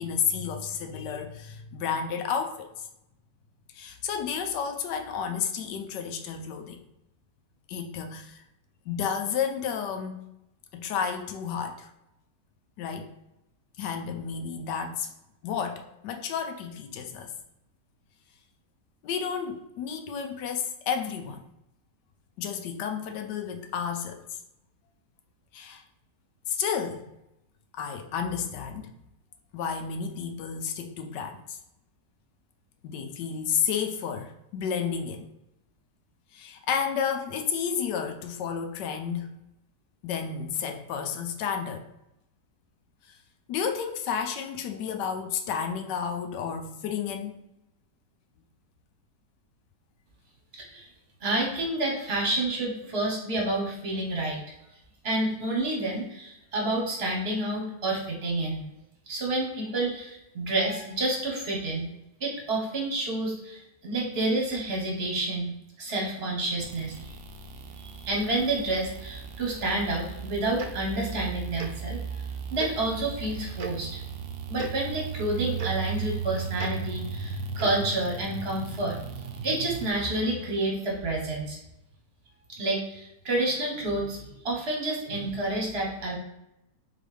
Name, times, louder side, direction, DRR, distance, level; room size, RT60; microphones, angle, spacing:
voice 1, 0.0-2.9 3.7-6.8 7.7-8.4 8.9-10.3 10.7-11.9 12.8-13.1 13.8-15.1 15.4-17.3 19.0-21.4 22.4-24.4 25.5-25.8 26.5-27.1 27.7-28.9 29.5-31.6 32.8-35.3 36.3-39.3 40.0-41.9 43.1-43.2 43.5-47.4, left 7 dB, 75° left, 6 dB, 1.1 m, -31 dB
voice 2, 50.5-50.9 51.2-54.4 55.0-58.6 59.1-61.9 62.2-67.1 67.8-72.2 72.5-74.0 74.5-81.6 82.5-86.2, right 2 dB, 40° right, -1 dB, 1.2 m, -29 dB
sound 1, 66.6-79.9, right 6 dB, 90° right, 1.3 m, -36 dB
Tick-tock, 70.6-70.7 71.6-71.7 72.6-72.7 73.6-73.7 74.5-74.7 75.6-75.7 76.6-76.7 77.6-77.8, right 6 dB, 65° right, 1.1 m, -36 dB
3.9 x 3.7 x 3.2 m, 0.87 s
omnidirectional pair, 1.9 m